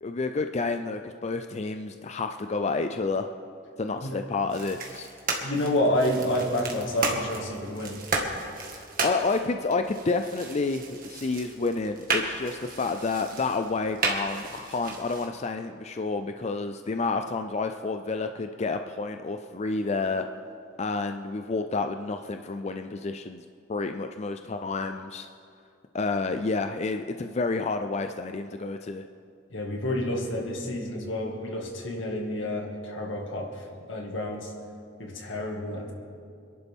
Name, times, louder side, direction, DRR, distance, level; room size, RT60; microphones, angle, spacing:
voice 1, 0.0-3.3 3.8-5.1 8.7-20.2 20.8-25.3 25.9-29.1, left 3 dB, 35° left, 7 dB, 0.4 m, -30 dB
sound 1, 4.5-15.3, right 3 dB, 50° right, 1.8 m, -34 dB
voice 2, 5.4-8.0 29.5-34.5 35.0-35.9, left 1 dB, 80° left, 1 dB, 2.1 m, -29 dB
26.5 x 11.0 x 3.6 m, 2.4 s
head